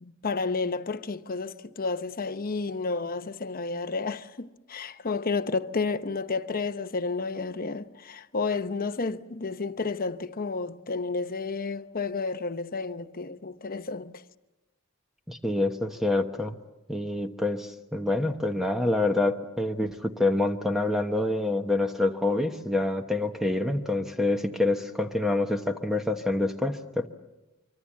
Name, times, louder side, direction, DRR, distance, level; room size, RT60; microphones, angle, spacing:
voice 1, 0.0-14.2, left 4 dB, 45° left, 0.9 m, -31 dB
voice 2, 15.3-16.6 16.9-27.1, left 2 dB, ahead, 1.1 m, -27 dB
25.0 x 25.0 x 7.5 m
head